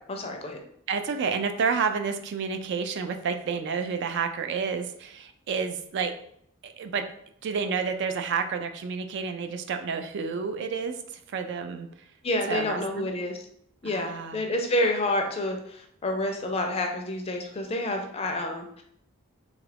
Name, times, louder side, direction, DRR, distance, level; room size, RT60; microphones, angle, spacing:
voice 1, 0.1-0.6 12.2-13.4 13.8-18.8, left 1 dB, 30° left, 3 dB, 0.4 m, -29 dB
voice 2, 0.9-6.1 6.6-7.0 7.4-11.9 12.5-13.1 13.8-14.4, right 5 dB, 55° right, 8 dB, 0.3 m, -30 dB
2.9 x 2.4 x 3.3 m, 0.69 s
head